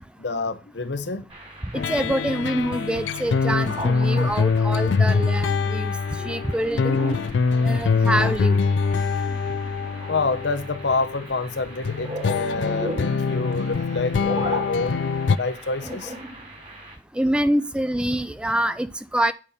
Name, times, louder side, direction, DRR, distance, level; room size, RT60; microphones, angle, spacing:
voice 1, 0.2-1.3 10.1-16.1, left 3 dB, 70° left, 0.8 m, -27 dB
sound 1, 1.3-16.9, right 1 dB, 30° right, 2.3 m, -38 dB
sound 2, 1.7-11.2 11.8-15.4, left 5 dB, 90° left, 0.4 m, -24 dB
voice 2, 1.7-5.9 6.2-7.0 7.6-8.6 17.1-19.3, right 1 dB, 5° right, 0.3 m, -25 dB
8.8 x 5.2 x 4.2 m
head